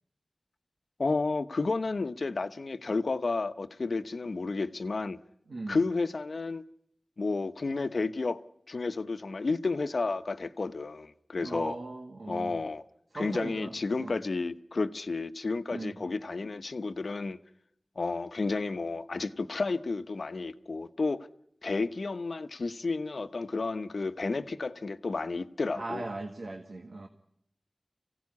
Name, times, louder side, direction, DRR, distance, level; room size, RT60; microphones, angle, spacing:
voice 1, 1.0-5.2 5.7-6.6 7.2-8.4 8.7-11.8 12.3-12.8 13.1-17.4 18.0-21.3 21.6-26.1, left 3 dB, 85° left, 1.0 m, -31 dB
voice 2, 5.5-5.9 11.4-12.6 13.1-13.7 14.0-14.2 15.7-16.0 25.7-27.1, right 2 dB, 85° right, 1.8 m, -38 dB
25.0 x 16.5 x 9.6 m
wide cardioid pair, 50°, 0 cm